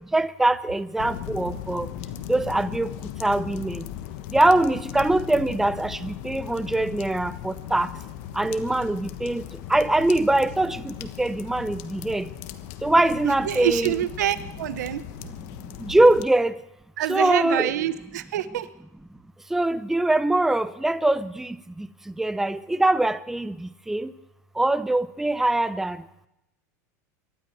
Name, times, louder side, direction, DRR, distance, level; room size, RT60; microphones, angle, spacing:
voice 1, 0.1-1.9 2.3-2.9 3.2-3.8 4.3-7.9 8.3-9.4 9.7-12.3 12.8-14.0 15.8-16.5 17.1-17.7 19.5-21.9 22.2-24.1 24.6-26.0, right 2 dB, 5° right, 14 dB, 0.6 m, -23 dB
sound 1, 1.0-16.2, left 11 dB, 65° left, 1.2 m, -38 dB
voice 2, 13.2-15.0 17.0-18.7, right 12 dB, 85° right, 14 dB, 1.0 m, -26 dB
24.0 x 12.5 x 4.6 m, 0.87 s
supercardioid pair, 120°, 9 cm